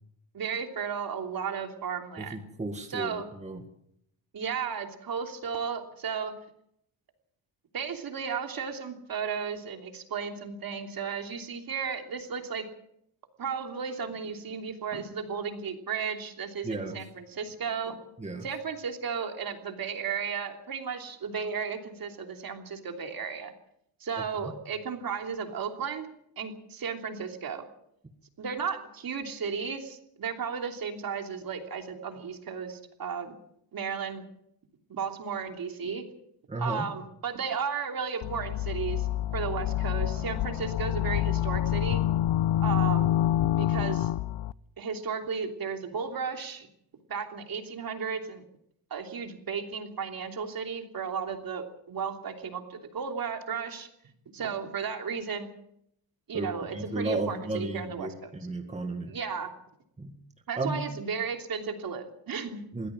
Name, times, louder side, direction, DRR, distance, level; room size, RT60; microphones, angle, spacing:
voice 1, 0.3-2.4 2.9-3.3 4.3-6.3 7.7-12.6 13.4-18.0 18.4-23.5 24.0-26.1 26.4-27.6 28.4-33.3 33.7-34.2 34.9-36.0 36.6-39.1 39.3-42.0 42.6-43.1 43.6-44.1 44.8-46.7 47.1-48.4 48.9-53.9 54.3-55.5 56.3-58.3 59.1-59.5 60.5-62.6, right 6 dB, 45° right, 4 dB, 3.1 m, -34 dB
voice 2, 2.2-3.6 16.6-17.0 18.2-18.4 36.5-36.9 56.3-59.1 60.0-60.1 60.6-60.8 62.7-62.9, right 2 dB, 15° right, 3 dB, 1.9 m, -34 dB
sound 1, 38.2-44.5, left 13 dB, 65° left, 0.7 m, -27 dB
23.0 x 16.0 x 7.6 m, 0.74 s
cardioid pair, 150°, 48 cm